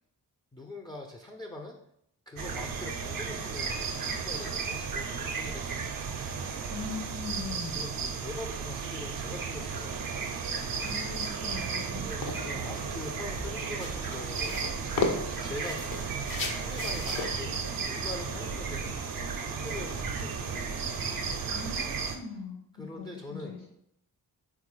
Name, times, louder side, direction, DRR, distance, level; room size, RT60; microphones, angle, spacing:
voice 1, 0.5-1.8 2.3-6.1 7.7-10.3 12.0-14.8 15.4-19.1 19.5-20.8 22.7-23.6, left 1 dB, 10° left, 1 dB, 0.3 m, -43 dB
sound 1, 2.4-22.2, right 5 dB, 60° right, 0.5 m, -34 dB
voice 2, 6.7-7.8 10.8-12.1 21.4-23.6, left 4 dB, 70° left, -5 dB, 1.2 m, -41 dB
sound 2, 10.6-19.2, left 3 dB, 55° left, 0.6 m, -37 dB
sound 3, 12.3-21.4, equal, 90° left, 1.0 m, -46 dB
3.5 x 2.3 x 3.1 m, 0.73 s
cardioid pair, 55°, 39 cm